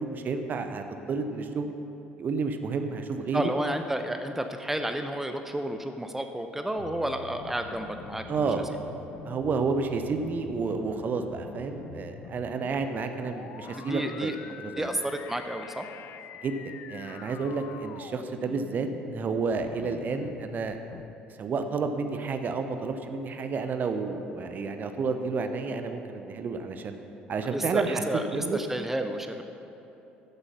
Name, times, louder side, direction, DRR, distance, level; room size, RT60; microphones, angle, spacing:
voice 1, 0.0-1.7 2.2-3.4 8.3-8.6 9.2-14.3 14.6-14.9 16.4-16.6 16.9-20.8 21.4-27.0 27.3-28.0 28.3-28.6, right 4 dB, 40° right, 7 dB, 0.9 m, -30 dB
voice 2, 3.3-8.5 13.8-14.4 14.8-15.9 27.4-29.4, right 1 dB, 5° right, 6 dB, 0.7 m, -31 dB
sound 1, 6.8-21.1, left 8 dB, 50° left, 0.5 m, -45 dB
14.0 x 8.1 x 5.7 m, 3.0 s
figure-of-eight pair, 55°, 5 cm